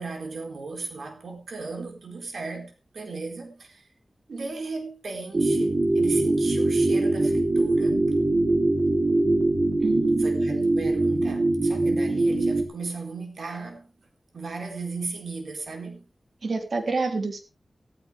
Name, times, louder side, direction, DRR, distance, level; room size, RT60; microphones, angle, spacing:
voice 1, 0.0-3.9 4.3-8.1 10.2-13.9 14.3-16.0, right 3 dB, 90° right, 4.2 m, -36 dB
sound 1, 5.3-12.6, right 2 dB, 50° right, 2.8 m, -22 dB
voice 2, 9.8-10.4 16.4-17.4, right 3 dB, 70° right, 3.0 m, -28 dB
15.0 x 14.5 x 3.3 m
wide cardioid pair, 85°, 0 cm